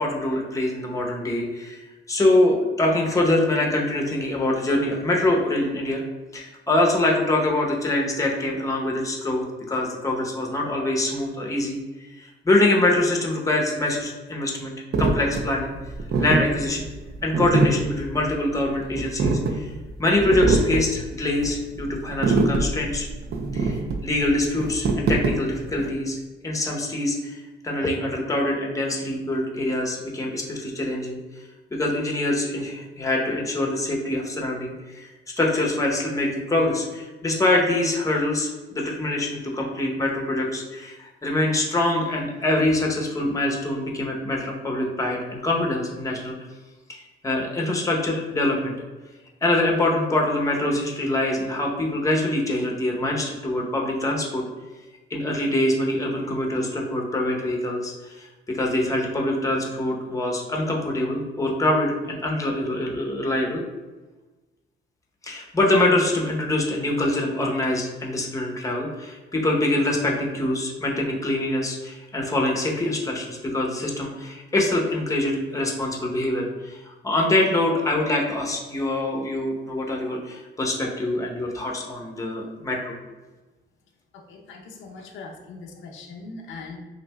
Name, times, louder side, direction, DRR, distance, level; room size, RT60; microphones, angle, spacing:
voice 1, 0.0-6.0 6.3-11.8 12.2-15.7 16.2-16.9 17.2-19.7 20.0-23.1 23.5-26.2 26.4-31.2 31.7-35.1 35.4-46.4 46.9-48.8 49.4-54.4 55.1-63.6 65.2-82.9, left 1 dB, 15° left, 0 dB, 0.8 m, -24 dB
sound 1, 14.9-25.9, right 3 dB, 55° right, 0.6 m, -24 dB
voice 2, 84.3-86.8, left 3 dB, 85° left, 0 dB, 0.7 m, -40 dB
5.6 x 2.7 x 2.3 m, 1.2 s
cardioid pair, 90°, 20 cm